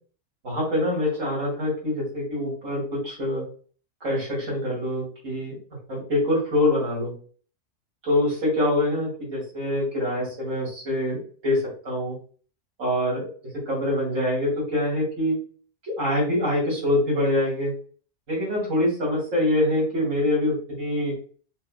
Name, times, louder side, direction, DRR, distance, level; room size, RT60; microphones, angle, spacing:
voice 1, 0.4-3.4 4.0-5.6 5.9-7.1 8.0-12.2 12.8-13.3 13.7-15.4 15.8-17.7 18.3-21.1, left 1 dB, 90° right, -4 dB, 2.4 m, -25 dB
5.7 x 2.5 x 2.2 m, 0.42 s
omnidirectional pair, 1.3 m